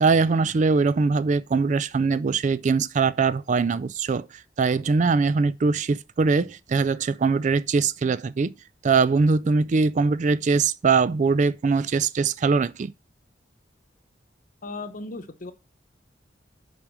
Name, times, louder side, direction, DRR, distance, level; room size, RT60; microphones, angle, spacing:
voice 1, 0.0-8.5 8.8-12.9, right 4 dB, 45° right, 0.4 m, -22 dB
voice 2, 14.6-15.5, left 3 dB, 50° left, 0.9 m, -36 dB
6.1 x 5.0 x 6.1 m
head